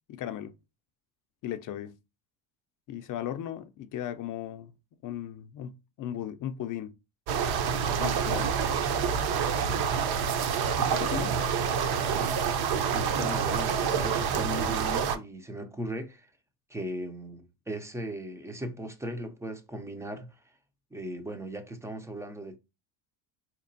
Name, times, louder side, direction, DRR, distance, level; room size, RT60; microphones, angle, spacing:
voice 1, 0.1-0.5 1.4-1.9 2.9-4.7 5.0-6.9 8.0-8.5 10.8-11.4, left 11 dB, 45° left, 0.5 m, -36 dB
sound 1, 7.3-15.2, right 6 dB, 55° right, 0.6 m, -27 dB
voice 2, 12.9-16.3 16.7-20.3 20.9-22.6, right 1 dB, 5° right, 0.4 m, -37 dB
4.1 x 2.9 x 2.6 m
cardioid pair, 110°, 47 cm